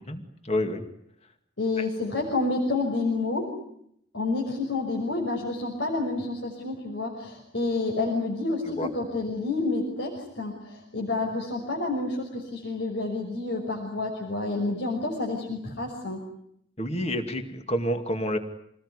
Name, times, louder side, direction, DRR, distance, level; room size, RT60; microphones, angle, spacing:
voice 1, 0.1-0.8 1.8-1.9 8.8-8.9 16.8-18.4, equal, 35° left, 6 dB, 2.4 m, -28 dB
voice 2, 1.6-3.5 4.1-16.2, left 3 dB, 70° left, -1 dB, 5.9 m, -29 dB
28.0 x 20.0 x 9.8 m, 0.73 s
head